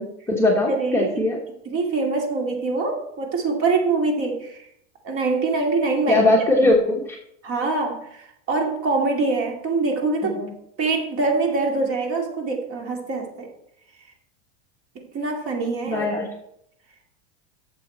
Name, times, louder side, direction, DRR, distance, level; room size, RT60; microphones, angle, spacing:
voice 1, 0.0-1.4 6.1-7.2 10.2-10.5 15.9-16.3, left 2 dB, 5° left, -2 dB, 1.2 m, -20 dB
voice 2, 0.7-1.3 1.6-4.7 5.0-6.3 6.6-6.7 7.4-10.4 10.8-13.5 14.9-16.1, right 3 dB, 35° right, 2 dB, 2.3 m, -24 dB
11.5 x 7.1 x 4.3 m, 0.75 s
supercardioid pair, 145°, 37 cm